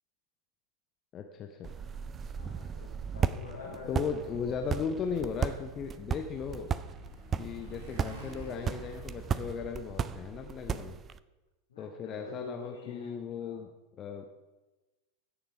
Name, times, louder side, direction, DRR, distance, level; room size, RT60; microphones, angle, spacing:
voice 1, 1.1-1.7 3.9-6.7 7.4-11.0 11.8-13.7 14.0-14.3, left 6 dB, 30° left, 5 dB, 0.9 m, -36 dB
sound 1, 1.6-11.2, right 7 dB, 25° right, 0.4 m, -36 dB
voice 2, 2.3-4.5 11.7-13.6, left 5 dB, 65° left, -2 dB, 3.6 m, -46 dB
Thunder, 3.6-10.4, right 1 dB, 65° right, 2.2 m, -58 dB
Motorcycle, 6.0-10.6, equal, 45° right, 3.8 m, -50 dB
16.0 x 7.1 x 4.9 m, 1.1 s
figure-of-eight pair, 90°, 0 cm